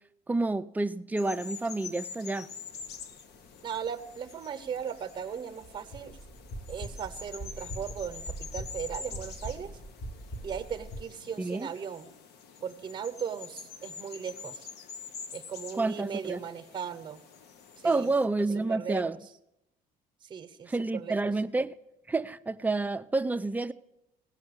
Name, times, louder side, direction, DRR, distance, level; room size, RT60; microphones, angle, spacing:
voice 1, 0.3-2.5 11.4-11.7 15.7-16.4 17.8-19.2 20.7-21.7 22.1-23.7, right 3 dB, 10° right, 0.4 m, -29 dB
sound 1, 1.2-18.3, left 6 dB, 75° left, 1.0 m, -46 dB
sound 2, 2.7-11.0, right 1 dB, 25° left, 1.2 m, -43 dB
voice 2, 3.6-6.2 6.7-9.7 10.4-12.1 12.6-14.7 15.3-17.2 17.8-18.1 18.7-19.0 20.2-21.2, right 7 dB, 25° right, 0.9 m, -37 dB
16.5 x 5.7 x 8.0 m
cardioid pair, 110°, 17 cm